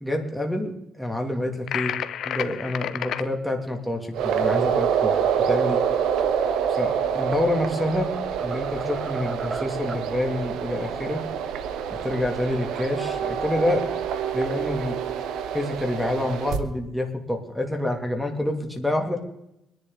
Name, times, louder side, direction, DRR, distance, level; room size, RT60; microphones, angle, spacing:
voice 1, 0.0-1.9 2.2-5.1 5.5-5.8 6.7-8.1 8.4-11.2 11.9-13.8 14.3-15.0 15.5-19.2, left 1 dB, ahead, 1 dB, 2.6 m, -27 dB
sound 1, 1.7-3.3, left 10 dB, 75° left, 0.9 m, -30 dB
sound 2, 4.1-16.6, right 8 dB, 85° right, 1.3 m, -26 dB
sound 3, 8.0-10.1, right 3 dB, 25° right, 0.6 m, -37 dB
24.0 x 11.0 x 3.9 m, 0.85 s
cardioid pair, 90°, 0 cm